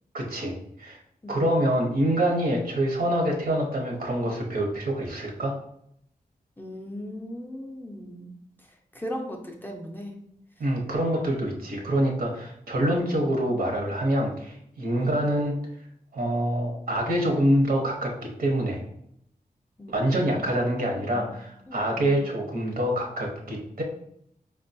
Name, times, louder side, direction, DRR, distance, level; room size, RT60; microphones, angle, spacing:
voice 1, 0.1-1.0 1.3-5.5 10.6-15.5 16.1-18.8 19.9-23.8, right 1 dB, 75° right, 0 dB, 0.8 m, -26 dB
voice 2, 6.6-8.3 8.9-10.2 15.0-15.1 19.8-20.6 21.0-21.4 21.7-22.2, equal, 15° left, 1 dB, 0.4 m, -38 dB
4.9 x 2.2 x 2.6 m, 0.72 s
wide cardioid pair, 175°, 15 cm